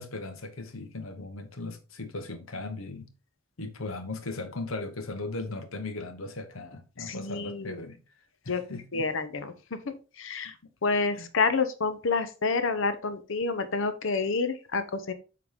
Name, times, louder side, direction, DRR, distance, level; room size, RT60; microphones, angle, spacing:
voice 1, 0.0-3.1 3.6-8.0 8.4-9.1 11.1-11.3, left 2 dB, 85° left, 1.1 m, -38 dB
voice 2, 7.0-7.8 8.5-8.6 8.9-9.5 9.9-10.5 10.8-15.1, left 4 dB, 65° left, 0.8 m, -28 dB
7.6 x 3.9 x 3.6 m
head